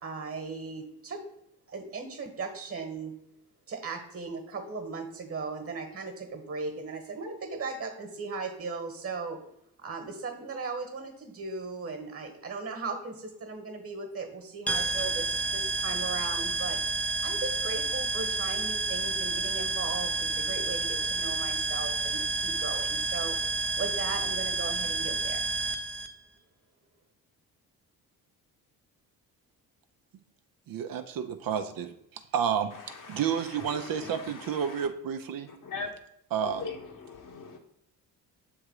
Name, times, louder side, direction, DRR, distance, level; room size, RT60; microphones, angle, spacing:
voice 1, 0.0-1.2 1.7-3.1 3.7-9.4 9.8-16.8 17.2-23.4 23.8-25.4, right 4 dB, 40° right, 6 dB, 1.4 m, -37 dB
sound 1, 14.7-26.1, right 3 dB, 5° left, 0.5 m, -30 dB
voice 2, 30.7-31.9 32.3-35.5 36.3-36.6, right 8 dB, 65° right, 7 dB, 0.7 m, -30 dB
voice 3, 32.7-34.9 35.5-35.9 36.4-37.6, left 4 dB, 60° left, 3 dB, 1.2 m, -41 dB
6.4 x 3.6 x 4.8 m, 0.76 s
cardioid pair, 75°, 37 cm